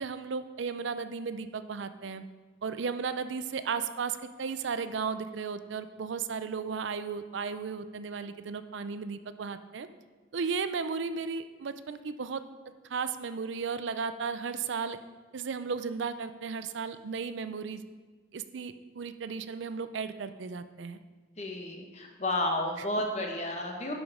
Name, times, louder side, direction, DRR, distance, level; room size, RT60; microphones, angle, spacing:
voice 1, 0.0-2.2 2.6-9.9 10.3-12.4 12.9-15.0 15.3-17.8 18.3-21.0, right 5 dB, 80° right, 11 dB, 0.5 m, -35 dB
voice 2, 21.4-23.9, left 1 dB, 35° left, 1 dB, 1.2 m, -32 dB
11.5 x 5.1 x 4.9 m, 1.4 s
head